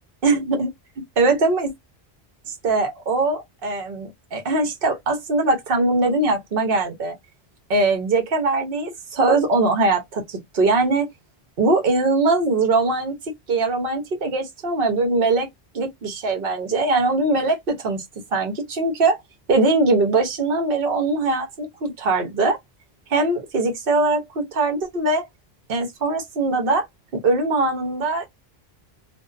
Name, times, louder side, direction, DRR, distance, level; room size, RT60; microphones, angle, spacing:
voice 1, 0.2-0.7 1.2-1.7 2.4-7.2 7.7-11.1 11.6-13.1 13.5-15.5 15.7-18.0 18.3-19.2 19.5-22.6 23.1-25.3 25.7-26.9 27.1-28.3, right 3 dB, 60° right, 1.0 m, -21 dB
2.5 x 2.2 x 2.5 m
omnidirectional pair, 1.1 m